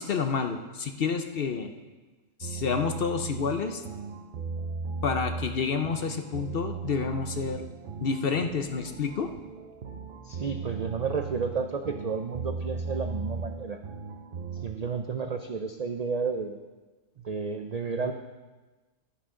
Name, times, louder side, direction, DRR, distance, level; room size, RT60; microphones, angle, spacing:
voice 1, 0.0-1.7 2.4-3.8 5.0-7.6 8.0-9.3, left 5 dB, 55° left, 7 dB, 0.7 m, -29 dB
sound 1, 2.4-14.7, right 5 dB, 50° right, 0.8 m, -37 dB
voice 2, 10.2-13.8 14.6-16.6 17.2-18.1, right 5 dB, 75° right, 6 dB, 0.3 m, -32 dB
11.0 x 10.5 x 3.7 m, 1.2 s
omnidirectional pair, 1.4 m